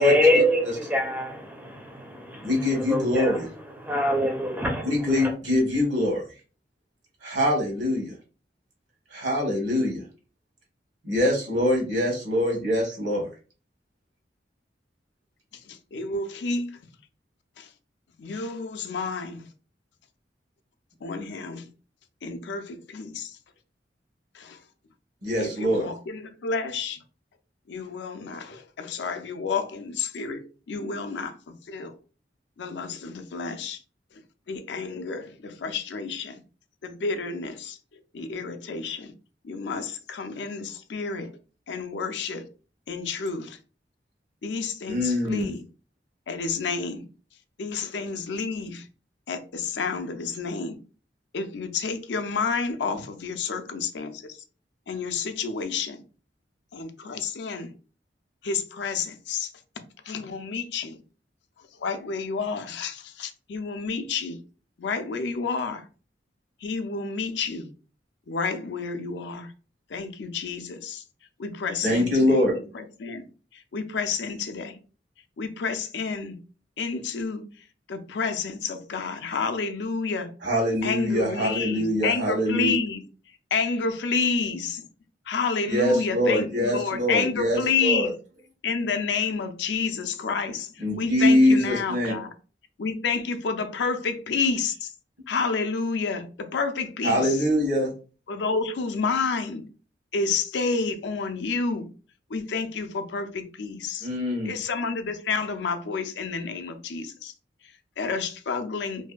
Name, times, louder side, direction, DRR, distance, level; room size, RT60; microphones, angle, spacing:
voice 1, 0.0-3.4 3.8-5.3, left 1 dB, 10° right, 0.4 m, -25 dB
voice 2, 2.4-3.5 4.8-6.2 7.2-8.1 9.1-10.0 11.0-13.3 25.2-25.9 44.9-45.5 71.8-72.6 80.4-82.7 85.7-88.1 90.8-92.1 97.0-97.9 104.0-104.5, left 1 dB, 75° right, 1.0 m, -23 dB
voice 3, 15.6-16.8 17.6-17.7 18.2-19.5 21.0-21.6 22.2-23.4 24.3-24.6 25.4-27.0 27.7-31.9 32.6-33.8 34.1-34.2 34.5-36.4 36.8-37.8 38.1-39.1 39.4-41.3 41.7-42.4 42.9-43.6 44.4-45.6 46.3-47.0 47.6-48.9 49.3-50.8 51.3-54.4 54.9-56.0 56.7-57.7 58.4-59.5 60.0-61.0 61.8-64.4 64.8-65.9 66.6-67.7 68.3-69.5 69.9-71.0 71.4-73.3 73.5-74.8 75.4-76.4 76.8-77.4 77.9-80.3 80.8-83.0 83.5-84.9 85.3-88.1 88.6-92.3 92.8-94.9 95.3-97.4 98.3-99.6 100.1-101.9 102.3-104.1 104.4-107.3 107.6-109.1, left 4 dB, 70° left, 0.4 m, -30 dB
2.6 x 2.5 x 2.2 m
head